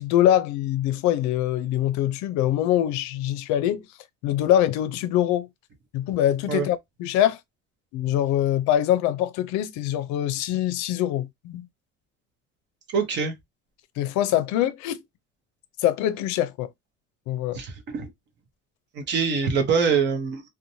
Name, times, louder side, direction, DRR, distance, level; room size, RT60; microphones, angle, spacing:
voice 1, 0.0-3.9 4.2-5.5 5.9-7.4 7.9-11.7 14.0-15.0 15.8-16.7 17.3-17.6, left 12 dB, 75° left, 0.5 m, -23 dB
voice 2, 12.9-13.3 17.5-18.1 18.9-20.4, right 5 dB, 40° right, 0.7 m, -24 dB
2.9 x 2.1 x 2.6 m
cardioid pair, 170°, 29 cm